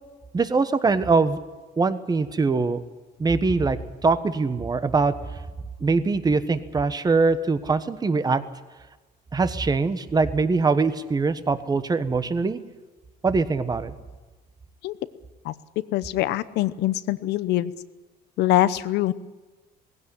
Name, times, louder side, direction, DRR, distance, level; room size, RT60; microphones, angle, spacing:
voice 1, 0.3-1.4 1.8-2.8 3.2-5.1 5.8-8.4 9.3-12.6 13.2-13.9, right 4 dB, 25° right, 12 dB, 1.3 m, -22 dB
voice 2, 15.9-17.7 18.4-19.1, left 15 dB, 80° left, 15 dB, 0.9 m, -23 dB
19.0 x 16.5 x 10.0 m, 1.2 s
cardioid pair, 110°, 17 cm